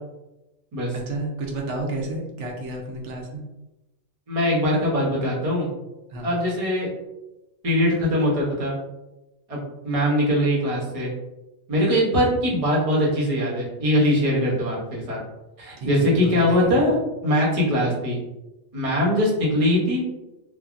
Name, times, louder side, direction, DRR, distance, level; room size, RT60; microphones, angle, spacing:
voice 1, 0.9-3.4 6.1-6.4 15.8-17.0, right 2 dB, 90° right, -1 dB, 1.0 m, -31 dB
voice 2, 4.3-5.7 6.2-6.9 7.6-8.7 9.5-9.6 9.8-11.1 11.7-15.2 15.6-17.0 17.2-18.2 18.7-20.0, equal, 35° right, -5 dB, 0.8 m, -21 dB
3.2 x 2.2 x 2.4 m, 0.98 s
omnidirectional pair, 1.2 m